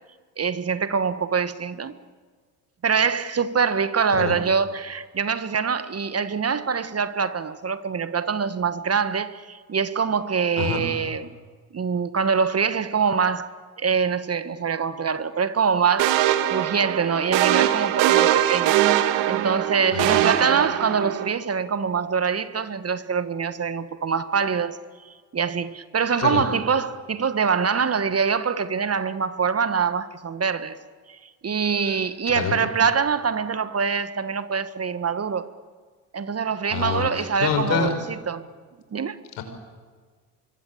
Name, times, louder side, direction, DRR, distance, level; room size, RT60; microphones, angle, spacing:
voice 1, 0.4-1.9 2.8-11.3 11.7-13.5 13.8-16.2 16.5-18.8 19.3-24.8 25.0-30.8 31.1-31.2 31.4-35.5 36.1-38.0 38.3-38.4 38.9-39.2, right 6 dB, 30° right, 1.5 m, -24 dB
sound 1, 16.0-21.3, right 13 dB, 70° right, 1.9 m, -22 dB
voice 2, 19.9-20.2 26.2-26.4 31.8-32.0 32.4-32.6 36.7-37.9 39.4-39.5, left 7 dB, 65° left, 5.6 m, -26 dB
25.0 x 23.5 x 8.6 m
hypercardioid pair, 60°, 46 cm